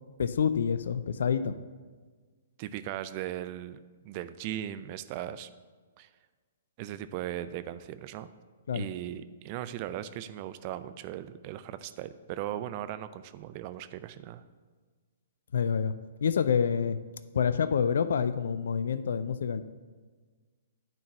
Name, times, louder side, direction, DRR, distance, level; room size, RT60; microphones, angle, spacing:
voice 1, 0.2-1.6 8.7-8.9 15.5-15.9 16.2-17.0 17.3-19.6, left 7 dB, 65° left, 13 dB, 0.4 m, -27 dB
voice 2, 2.6-5.5 6.0-6.1 6.8-8.3 8.7-14.4, right 12 dB, 40° right, 13 dB, 0.5 m, -38 dB
10.5 x 4.6 x 6.8 m, 1.4 s
figure-of-eight pair, 120°, 0 cm